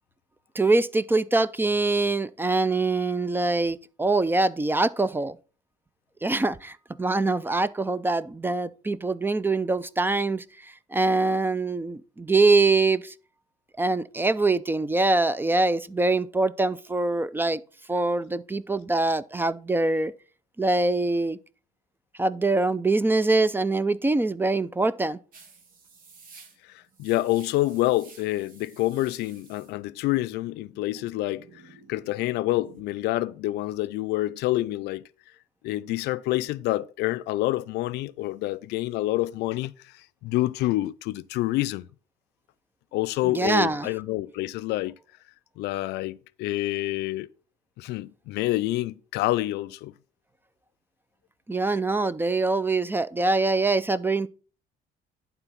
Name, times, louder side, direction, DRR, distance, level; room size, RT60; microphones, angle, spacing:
voice 1, 0.6-5.4 6.2-13.1 13.8-17.6 17.9-20.1 20.6-21.4 22.2-25.2 43.2-43.9 51.5-54.3, right 3 dB, 10° right, 0.4 m, -24 dB
sound 1, 25.3-32.8, right 4 dB, 55° right, 1.8 m, -53 dB
voice 2, 26.6-31.6 31.9-35.0 35.6-41.9 42.9-44.9 45.6-47.3 47.8-49.9, left 17 dB, 85° left, 0.5 m, -27 dB
11.0 x 3.9 x 5.7 m
cardioid pair, 110°, 17 cm